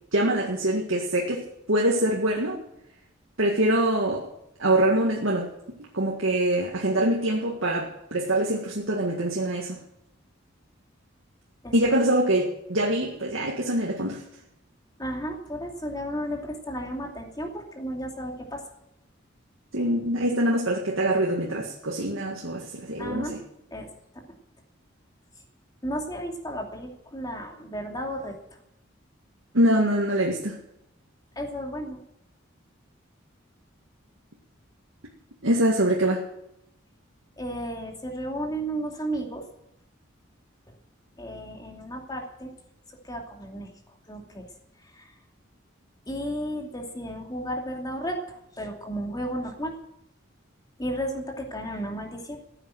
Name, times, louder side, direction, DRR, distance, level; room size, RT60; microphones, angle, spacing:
voice 1, 0.1-2.6 3.4-4.3 4.6-5.5 5.8-9.8 11.7-14.2 19.7-23.4 29.5-30.6 35.4-36.2, right 1 dB, 85° right, -1 dB, 2.0 m, -24 dB
voice 2, 15.0-18.6 23.0-23.3 23.7-23.9 24.1-24.2 25.8-28.4 31.4-32.0 37.4-39.4 41.2-42.5 42.9-43.7 44.1-44.5 44.8-45.1 46.1-48.2 48.6-49.7 50.8-52.4, equal, 20° left, 2 dB, 2.7 m, -33 dB
15.0 x 9.1 x 7.7 m, 0.82 s
head